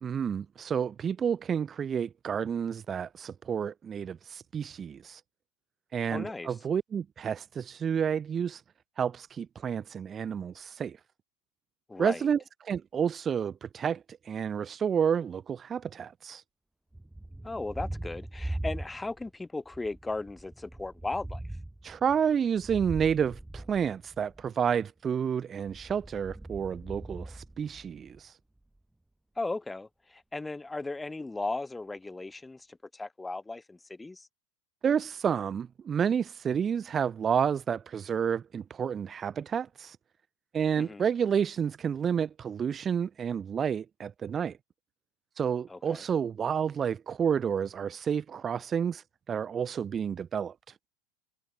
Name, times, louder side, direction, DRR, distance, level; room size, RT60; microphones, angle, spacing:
voice 1, 0.0-5.2 5.9-8.6 9.0-11.0 12.0-16.4 21.8-28.3 34.8-40.0 40.5-44.6 45.4-50.5, right 7 dB, 30° right, 1.3 m, -30 dB
voice 2, 6.1-6.5 11.9-12.3 17.4-21.4 29.4-34.3 40.8-41.0 45.7-46.0, left 2 dB, 10° left, 2.2 m, -36 dB
Thunder, 16.9-19.3 19.7-24.5 25.5-28.2, right 1 dB, 5° right, 4.3 m, -41 dB
hypercardioid pair, 90°, 0 cm